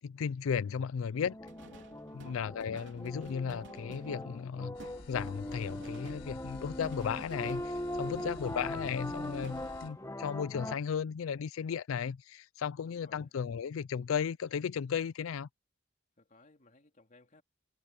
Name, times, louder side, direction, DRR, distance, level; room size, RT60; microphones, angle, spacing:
voice 1, 0.0-1.4 2.1-4.8 5.1-15.5, left 7 dB, 80° left, 0.4 m, -35 dB
sound 1, 1.3-10.8, left 1 dB, 15° left, 1.3 m, -41 dB
sound 2, 1.5-7.9 8.2-10.1, right 2 dB, 65° right, 3.7 m, -53 dB
voice 2, 2.1-2.5 12.8-13.3 16.2-17.4, left 2 dB, 40° left, 3.4 m, -62 dB
sound 3, 4.7-9.9, left 1 dB, 65° left, 4.0 m, -51 dB
head